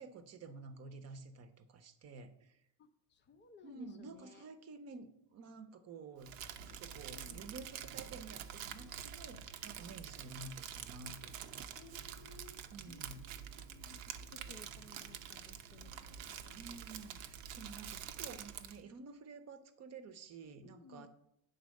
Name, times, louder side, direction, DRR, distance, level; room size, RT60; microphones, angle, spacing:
voice 1, 0.0-2.6 3.6-6.3 6.6-11.7 12.7-13.2 15.4-15.6 16.2-21.1, right 4 dB, 35° right, 8 dB, 0.8 m, -51 dB
voice 2, 2.8-4.5 7.1-7.5 11.7-12.6 12.9-16.6 20.6-21.1, left 4 dB, 25° left, 8 dB, 0.5 m, -59 dB
Crumpling crinkling, 6.2-18.8, right 9 dB, 85° right, 0.9 m, -47 dB
9.4 x 4.1 x 6.4 m, 0.76 s
cardioid pair, 145°, 46 cm